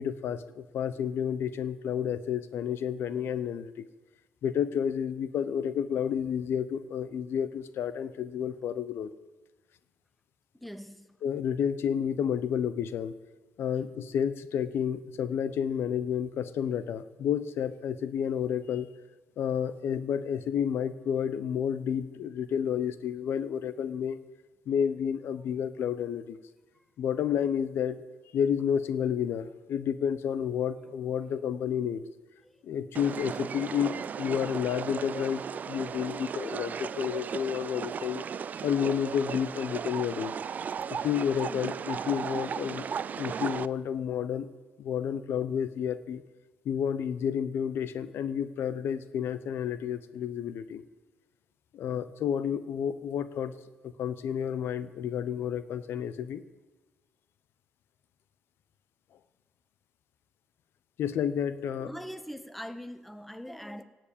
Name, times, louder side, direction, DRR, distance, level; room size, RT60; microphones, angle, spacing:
voice 1, 0.0-3.9 4.4-9.1 11.2-13.1 13.6-18.9 19.4-24.2 24.7-26.4 27.0-28.0 28.3-32.0 32.6-33.9 34.2-35.4 35.7-38.2 38.6-40.4 41.0-42.9 43.2-44.5 44.8-46.2 46.7-50.8 51.7-53.5 53.8-56.4 61.0-61.9, left 8 dB, 70° left, 0.8 m, -30 dB
voice 2, 10.6-11.2 26.7-26.8 32.4-32.6 38.5-38.7 61.6-63.8, equal, ahead, 0.8 m, -42 dB
sound 1, 32.9-43.7, right 7 dB, 40° right, 0.4 m, -36 dB
17.5 x 7.6 x 8.6 m
cardioid pair, 110°, 4 cm